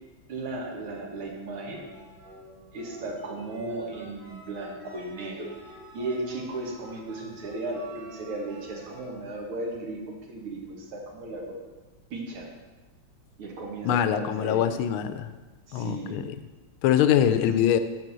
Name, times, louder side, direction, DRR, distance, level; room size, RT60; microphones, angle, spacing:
voice 1, 0.3-1.8 2.7-10.0 10.3-11.6 12.1-12.5 13.4-14.7 15.7-16.3 17.2-17.5, right 2 dB, 85° right, 0 dB, 2.3 m, -35 dB
sound 1, 1.7-9.1, right 1 dB, 35° right, 1.1 m, -49 dB
voice 2, 13.8-15.3 15.7-16.3 16.8-17.8, left 10 dB, 85° left, 11 dB, 1.4 m, -23 dB
9.2 x 4.1 x 6.8 m, 1.2 s
omnidirectional pair, 2.3 m